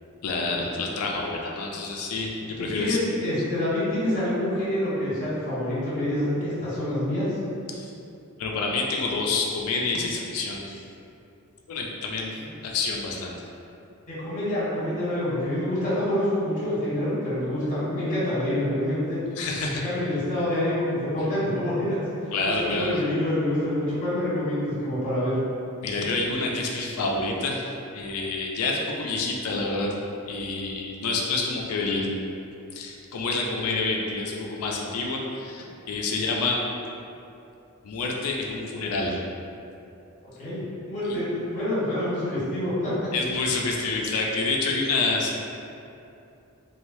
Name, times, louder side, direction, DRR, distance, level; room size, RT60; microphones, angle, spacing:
voice 1, 0.2-3.0 7.7-7.9 8.4-10.8 11.7-12.4 12.6-13.4 19.4-19.8 22.3-22.9 25.8-29.9 30.3-32.1 32.7-36.6 37.8-39.2 41.1-41.2 43.1-45.3, left 3 dB, 75° left, -1 dB, 0.4 m, -28 dB
voice 2, 2.4-7.3 12.3-12.5 14.1-19.2 19.8-22.0 22.4-25.4 40.4-42.9, left 1 dB, 35° left, -11 dB, 1.1 m, -27 dB
3.1 x 2.3 x 2.6 m, 2.7 s
head